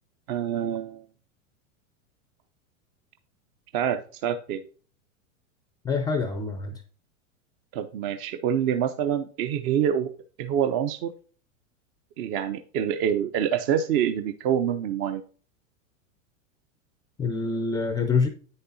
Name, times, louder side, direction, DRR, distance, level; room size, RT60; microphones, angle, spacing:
voice 1, 0.3-1.0 3.7-4.6 7.7-10.1 10.4-11.1 12.2-15.2, right 9 dB, 45° right, 10 dB, 0.6 m, -26 dB
voice 2, 5.8-6.8 17.2-18.3, left 4 dB, 10° left, 8 dB, 0.3 m, -26 dB
8.8 x 6.6 x 2.7 m, 0.42 s
hypercardioid pair, 110°, 41 cm